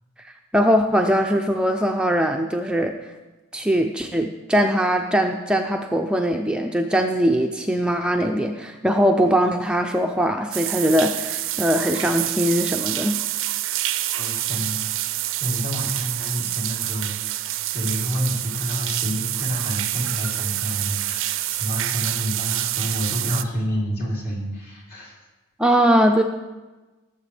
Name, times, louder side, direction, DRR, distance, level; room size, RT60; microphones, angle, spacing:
voice 1, 0.2-3.0 3.5-13.1 25.6-26.2, equal, 5° right, 3 dB, 0.4 m, -21 dB
sound 1, 10.5-23.4, right 15 dB, 65° right, 0.4 m, -27 dB
voice 2, 14.1-14.8 15.4-25.2, equal, 50° left, -4 dB, 3.2 m, -29 dB
17.5 x 7.4 x 3.3 m, 1.2 s
head